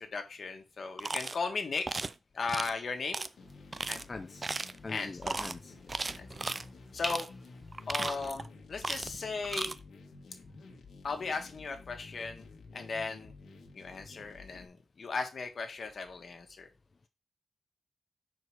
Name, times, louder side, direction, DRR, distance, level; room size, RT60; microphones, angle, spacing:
voice 1, 0.0-2.0 2.3-3.2 3.9-4.0 4.9-5.1 6.2-6.3 6.9-7.3 7.9-9.8 11.0-13.3 13.7-16.7, left 4 dB, 55° left, 1.4 m, -37 dB
sound 1, 1.0-1.4 1.9-2.1 2.5-2.7 3.1-3.3 3.7-4.0 4.4-4.8 5.2-5.5 5.9-6.6 7.0-7.3 7.7-8.5 8.8-9.2 9.4-9.7, right 3 dB, 35° right, 0.4 m, -36 dB
sound 2, 2.9-8.4, left 1 dB, 15° left, 1.4 m, -47 dB
sound 3, 3.4-14.7, left 3 dB, 90° left, 1.3 m, -52 dB
voice 2, 4.1-4.5 4.8-6.2, left 3 dB, 35° left, 0.4 m, -43 dB
6.1 x 4.7 x 4.8 m
wide cardioid pair, 100°, 0 cm